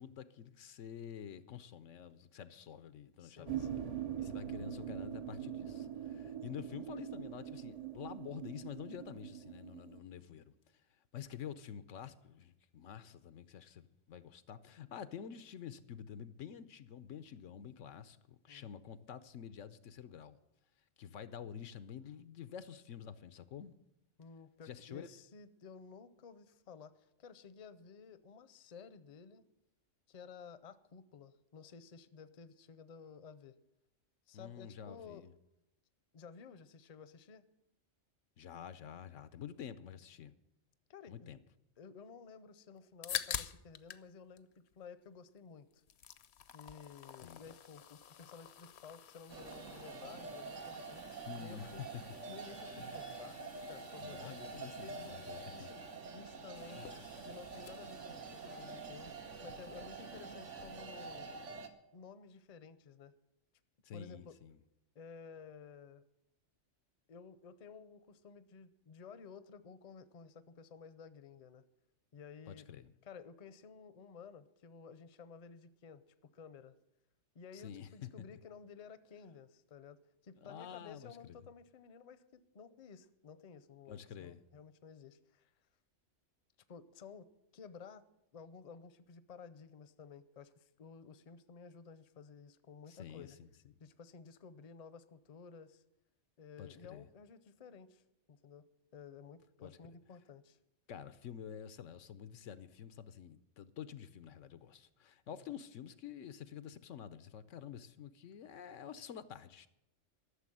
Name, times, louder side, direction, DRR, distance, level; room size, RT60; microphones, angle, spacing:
voice 1, 0.0-3.7 4.2-10.5 11.1-20.4 21.0-23.7 24.6-25.1 34.3-35.3 38.4-40.3 41.1-41.4 47.2-47.4 51.3-51.9 52.7-53.0 54.0-55.7 56.7-57.0 63.8-64.6 72.5-72.9 77.5-78.1 80.4-81.4 83.9-84.4 92.9-93.5 96.6-97.1 99.6-99.8 100.9-109.7, left 9 dB, 85° left, 1.1 m, -48 dB
voice 2, 3.2-3.9 18.5-18.7 24.2-29.5 30.1-33.6 34.3-35.3 36.1-37.4 40.9-41.1 41.8-44.5 44.8-45.8 46.5-51.8 52.3-54.4 54.8-55.2 55.5-55.8 56.1-56.9 57.2-59.1 59.4-61.3 61.9-63.1 63.9-64.3 64.9-66.0 67.1-71.6 72.1-72.7 73.0-76.0 76.3-76.8 77.3-85.5 86.7-87.3 87.5-88.0 88.3-93.4 93.8-95.8 96.4-98.0 98.3-98.6 98.9-100.6 105.3-105.4, left 6 dB, 40° left, 0.7 m, -54 dB
sound 1, 3.4-10.0, right 10 dB, 40° right, 0.6 m, -43 dB
sound 2, 42.8-44.1 44.4-45.4 45.7-61.2, left 9 dB, 65° left, 0.9 m, -49 dB
sound 3, 49.3-61.7, right 4 dB, 75° right, 1.5 m, -47 dB
13.5 x 6.9 x 9.9 m
omnidirectional pair, 1.2 m